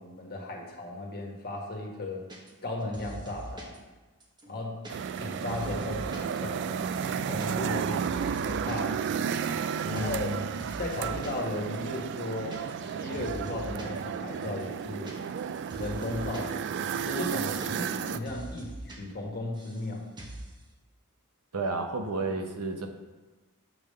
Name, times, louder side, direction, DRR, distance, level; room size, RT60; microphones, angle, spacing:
voice 1, 0.0-2.2 2.6-3.7 4.5-4.8 5.2-6.9 7.3-8.1 8.4-9.0 9.9-10.3 10.8-15.1 15.8-20.1, left 1 dB, 45° left, 0 dB, 1.4 m, -36 dB
sound 1, 2.3-2.7 2.9-3.8 4.2-6.3 6.6-6.7 7.0-7.5 7.7-8.8 9.0-9.6 10.0-10.3 10.6-11.5 11.7-11.8 12.1-12.9 13.1-14.0 14.4-16.5 16.8-16.9 17.2-18.0 18.3-19.0 19.2-19.9 20.2-20.5, right 1 dB, 20° right, 1.0 m, -43 dB
sound 2, 4.9-18.2, right 7 dB, 55° right, 0.3 m, -33 dB
voice 2, 9.8-10.5 21.5-22.9, right 2 dB, 85° right, 5 dB, 0.9 m, -32 dB
7.4 x 3.5 x 6.4 m, 1.2 s
head